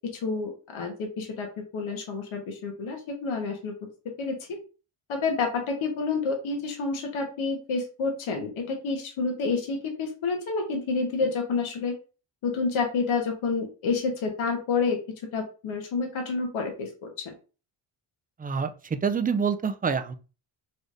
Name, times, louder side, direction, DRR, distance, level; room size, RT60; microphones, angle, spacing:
voice 1, 0.2-3.8 4.2-4.4 5.1-11.9 12.4-15.0 15.3-17.3, left 4 dB, 70° left, 2 dB, 1.4 m, -29 dB
voice 2, 18.4-20.1, right 6 dB, 20° right, 10 dB, 0.4 m, -27 dB
4.0 x 3.2 x 2.6 m, 0.35 s
supercardioid pair, 65°, 50 cm